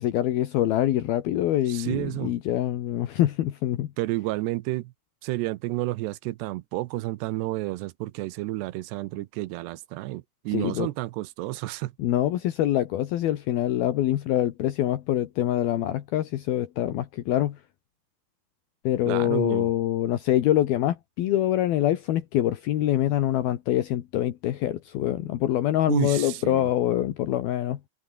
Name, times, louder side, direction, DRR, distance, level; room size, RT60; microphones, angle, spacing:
voice 1, 0.0-3.9 10.5-10.9 12.0-17.6 18.8-27.8, left 13 dB, 70° left, 3.1 m, -25 dB
voice 2, 1.7-2.4 4.0-4.9 5.2-11.9 19.1-19.7 25.9-26.7, right 18 dB, 85° right, 2.9 m, -30 dB
omnidirectional pair, 4.8 m